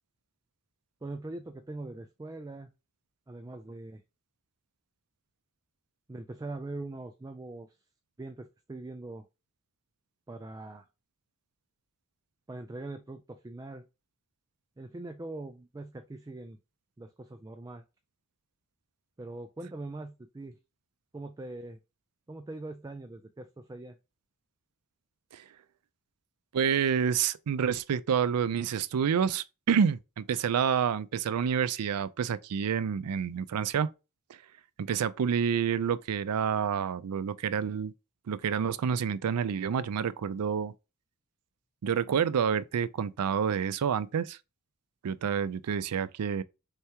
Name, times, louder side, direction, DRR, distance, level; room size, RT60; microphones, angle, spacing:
voice 1, 1.0-2.7 3.3-4.0 6.1-7.8 8.2-9.3 10.3-10.9 12.5-13.8 14.8-16.6 17.0-17.8 19.2-20.6 21.1-21.8 22.3-24.0, right 2 dB, 15° right, 0.3 m, -42 dB
voice 2, 26.5-33.9 34.8-37.9 38.3-40.7 41.8-44.4 45.0-46.4, right 7 dB, 85° right, 0.4 m, -28 dB
4.5 x 3.4 x 2.8 m
head